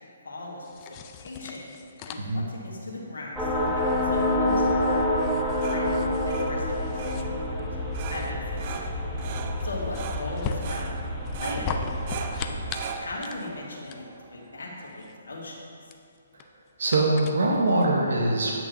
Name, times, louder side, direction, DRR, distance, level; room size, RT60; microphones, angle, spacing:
voice 1, 0.0-1.7 2.0-5.1 5.7-9.0 9.6-14.0 14.3-15.6, left 2 dB, 75° left, -3 dB, 1.5 m, -39 dB
sound 1, 0.6-17.9, left 6 dB, 30° left, 0.4 m, -41 dB
sound 2, 3.4-12.8, left 1 dB, 5° left, 0.8 m, -28 dB
sound 3, 5.3-15.0, right 6 dB, 40° right, 0.4 m, -41 dB
voice 2, 16.8-18.5, right 2 dB, 70° right, -1 dB, 0.9 m, -23 dB
9.1 x 6.1 x 2.6 m, 2.4 s
hypercardioid pair, 140°, 0 cm